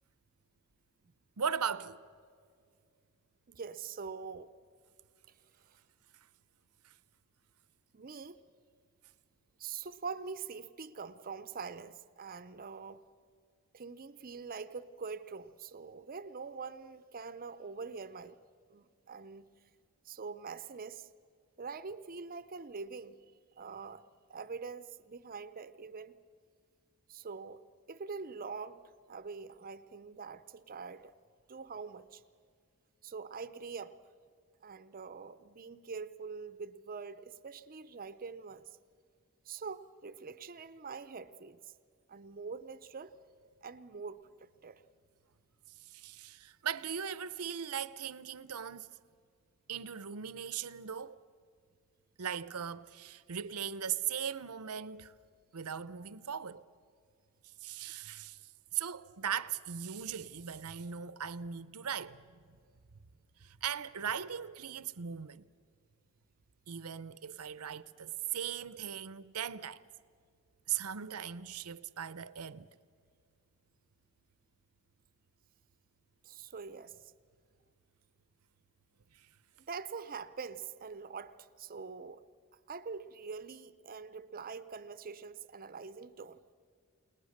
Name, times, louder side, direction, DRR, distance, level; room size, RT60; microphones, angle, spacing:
voice 1, 1.4-2.0 45.8-48.9 49.7-51.2 52.2-55.1 55.5-56.6 57.6-58.4 58.7-62.2 63.4-65.5 66.7-69.8 70.7-72.7, right 8 dB, 85° right, 0.8 m, -38 dB
voice 2, 3.5-4.5 5.3-5.4 7.9-8.4 9.6-13.0 13.7-18.4 18.7-19.5 20.0-21.1 21.6-23.2 23.6-26.2 27.1-31.1 31.5-32.2 33.0-34.0 34.6-38.7 39.5-41.7 42.1-43.1 43.6-44.8 76.2-77.1 79.7-82.2 82.7-86.5, right 5 dB, 40° right, 0.6 m, -44 dB
30.0 x 19.5 x 6.6 m
head